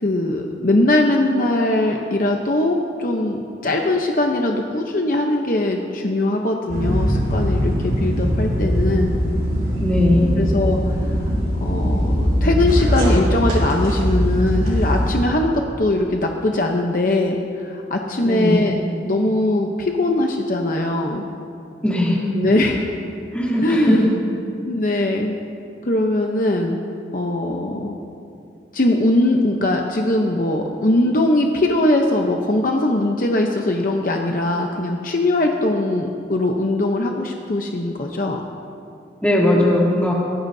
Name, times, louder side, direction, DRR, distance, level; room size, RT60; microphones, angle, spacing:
voice 1, 0.0-9.2 10.3-11.3 11.6-18.8 19.0-21.2 22.3-22.8 23.6-24.1 24.6-25.3 25.8-26.8 27.1-27.9 28.7-38.4, left 1 dB, 50° left, 1 dB, 0.9 m, -21 dB
sound 1, 6.7-15.1, equal, 50° right, 4.2 m, -20 dB
voice 2, 9.8-10.4 18.2-18.6 21.8-22.2 23.3-24.0 39.2-40.1, left 1 dB, 10° left, -5 dB, 2.9 m, -18 dB
23.5 x 18.0 x 2.8 m, 2.6 s
head